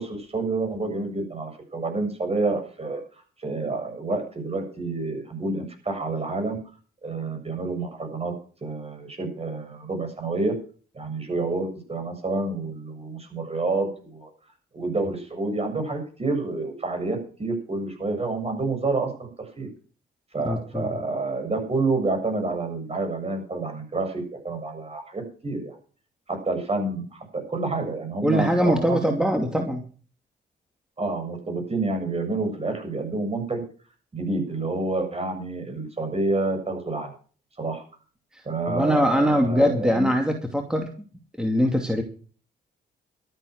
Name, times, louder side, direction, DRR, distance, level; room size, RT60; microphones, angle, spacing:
voice 1, 0.0-3.0 3.4-6.6 7.0-8.3 8.6-10.5 10.9-14.3 14.7-19.1 19.6-19.7 20.3-25.8 26.3-29.0 31.0-33.6 34.1-37.1 37.6-37.8 38.5-40.1, right 3 dB, 35° right, 6 dB, 7.2 m, -28 dB
voice 2, 20.4-20.9 28.2-29.8 38.3-40.9 41.4-42.0, equal, 5° right, 3 dB, 2.5 m, -22 dB
13.0 x 9.8 x 6.5 m, 0.41 s
cardioid pair, 70°, 18 cm